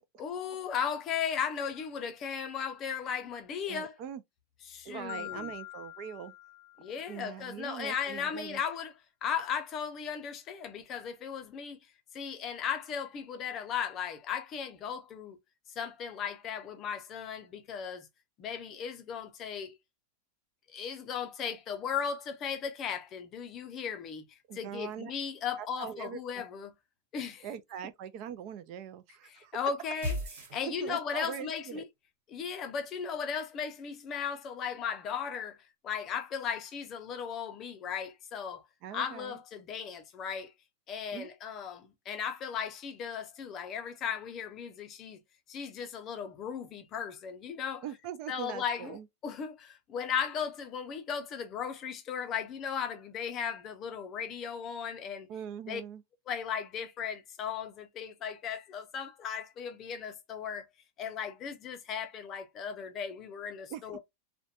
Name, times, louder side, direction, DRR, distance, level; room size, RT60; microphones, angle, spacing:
voice 1, 0.2-4.0 4.7-5.5 6.8-8.9 9.2-11.8 12.1-15.4 15.8-18.1 18.4-19.8 20.7-26.7 27.1-27.5 29.3-30.2 30.5-31.8 32.3-35.6 35.8-38.6 38.9-40.5 40.9-45.2 45.5-47.8 48.3-55.3 55.7-55.8 56.3-60.7 61.0-64.0, left 7 dB, 25° left, 0.5 m, -36 dB
voice 2, 3.7-4.2 4.8-6.3 7.1-8.6 24.5-25.1 25.6-26.2 27.4-29.5 30.6-31.8 38.8-39.4 41.1-41.3 47.8-49.1 55.3-56.0 63.7-64.0, right 9 dB, 40° right, 0.3 m, -42 dB
Marimba xylophone, 5.1-7.3, left 17 dB, 85° left, 0.5 m, -45 dB
sound 1, 30.0-31.3, left 1 dB, 75° right, 1.2 m, -36 dB
2.5 x 2.1 x 2.7 m
supercardioid pair, 160°, 0 cm